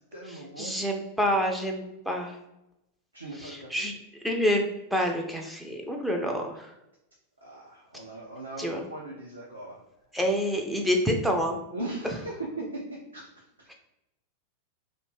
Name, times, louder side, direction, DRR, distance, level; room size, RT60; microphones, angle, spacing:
voice 1, 0.0-0.7 3.1-3.8 7.4-9.8 10.1-10.6 11.7-12.8 13.1-13.7, right 2 dB, 85° right, -5 dB, 0.5 m, -39 dB
voice 2, 0.6-2.4 3.4-3.9 4.2-6.7 8.6-8.8 10.1-11.6 13.7-13.8, equal, ahead, 1 dB, 0.3 m, -27 dB
2.5 x 2.1 x 3.1 m, 0.88 s
figure-of-eight pair, 90°, 0 cm